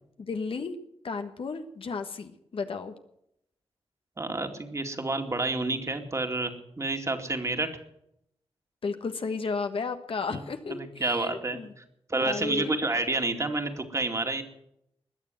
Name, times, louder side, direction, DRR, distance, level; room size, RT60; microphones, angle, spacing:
voice 1, 0.2-0.7 1.0-2.9 8.8-11.7 12.2-12.7, left 4 dB, 60° left, 7 dB, 1.4 m, -33 dB
voice 2, 4.2-7.7 10.3-11.8 12.1-14.4, right 2 dB, 30° right, 5 dB, 2.3 m, -29 dB
20.5 x 6.9 x 9.3 m, 0.78 s
cardioid pair, 70°, 10 cm